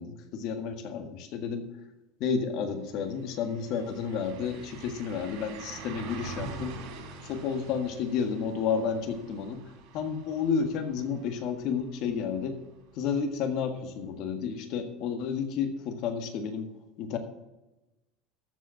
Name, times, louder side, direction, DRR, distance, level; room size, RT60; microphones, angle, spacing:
voice 1, 0.0-1.6 2.2-6.7 7.2-9.6 9.9-12.6 12.9-16.6 17.0-17.2, left 6 dB, 55° left, 6 dB, 1.7 m, -31 dB
sound 1, 2.6-2.7 3.0-12.8 13.2-13.3 16.0-16.1, right 4 dB, 75° right, 3.5 m, -45 dB
13.5 x 5.3 x 7.1 m, 0.99 s
supercardioid pair, 140°, 0 cm